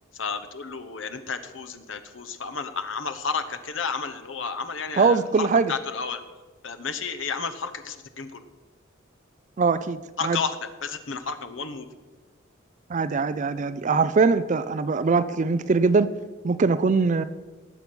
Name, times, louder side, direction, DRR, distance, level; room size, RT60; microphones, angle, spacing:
voice 1, 0.2-6.2 6.6-8.4 10.2-10.6 10.8-11.9, left 5 dB, 65° left, 9 dB, 1.0 m, -32 dB
voice 2, 5.0-5.7 9.6-10.4 12.9-16.1 16.4-17.2, right 4 dB, 35° right, 14 dB, 0.4 m, -22 dB
18.0 x 7.1 x 6.1 m, 1.3 s
head